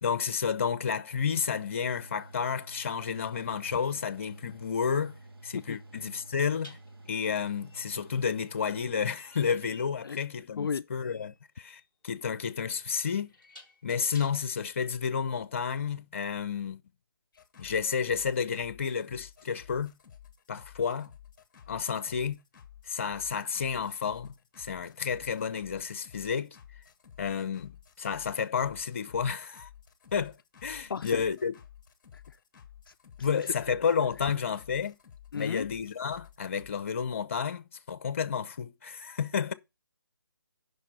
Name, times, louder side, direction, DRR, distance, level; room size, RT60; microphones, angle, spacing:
voice 1, 0.0-5.1 5.4-6.8 7.1-13.3 13.8-16.8 17.6-19.9 20.5-21.1 21.7-22.4 22.9-26.6 27.2-29.7 30.1-30.3 30.6-31.5 33.2-35.0 35.3-39.5, left 6 dB, 35° left, 0.7 m, -31 dB
Mechanical fan, 1.4-9.8, right 2 dB, 70° right, 1.6 m, -51 dB
sound 1, 6.6-14.7, left 1 dB, 5° right, 1.3 m, -56 dB
sound 2, 17.3-36.7, left 9 dB, 15° left, 1.1 m, -53 dB
voice 2, 30.9-31.2 32.1-32.4 32.9-33.0 33.2-33.5 35.3-35.7, left 6 dB, 60° left, 0.4 m, -34 dB
9.9 x 5.5 x 4.2 m
hypercardioid pair, 170°, 13 cm